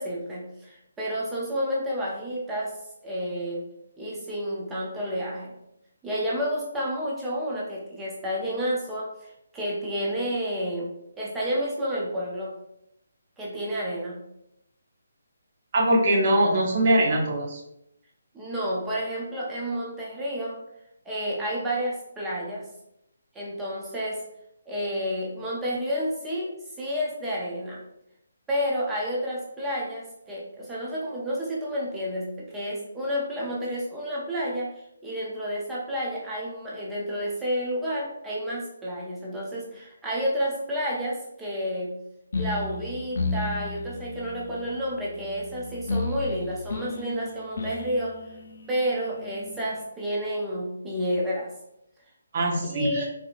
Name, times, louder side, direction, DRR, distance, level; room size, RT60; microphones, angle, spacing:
voice 1, 0.0-2.8 3.0-3.7 4.0-5.5 6.0-10.9 11.2-12.5 13.4-14.2 18.3-20.6 21.1-22.7 23.3-24.2 24.7-27.8 28.5-42.0 42.3-48.2 48.7-51.5 52.6-53.1, equal, 5° right, -5 dB, 0.4 m, -30 dB
voice 2, 15.7-17.6 52.3-53.0, right 1 dB, 30° right, -2 dB, 0.8 m, -22 dB
sound 1, 42.3-49.8, left 3 dB, 55° left, 0.5 m, -34 dB
4.2 x 2.7 x 2.5 m, 0.82 s
hypercardioid pair, 170°, 0 cm